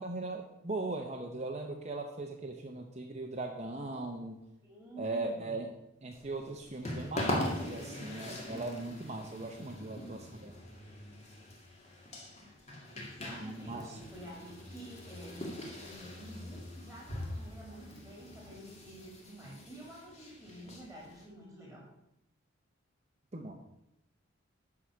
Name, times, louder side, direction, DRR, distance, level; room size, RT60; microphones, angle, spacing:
voice 1, 0.0-4.4 5.0-5.7 6.0-10.5 13.4-14.0 23.3-23.6, right 2 dB, 30° right, 2 dB, 0.8 m, -39 dB
voice 2, 4.6-5.6 12.9-21.9, right 1 dB, ahead, -3 dB, 2.3 m, -49 dB
sound 1, 6.1-21.2, left 1 dB, 30° left, 2.1 m, -42 dB
12.0 x 4.9 x 6.4 m, 0.85 s
head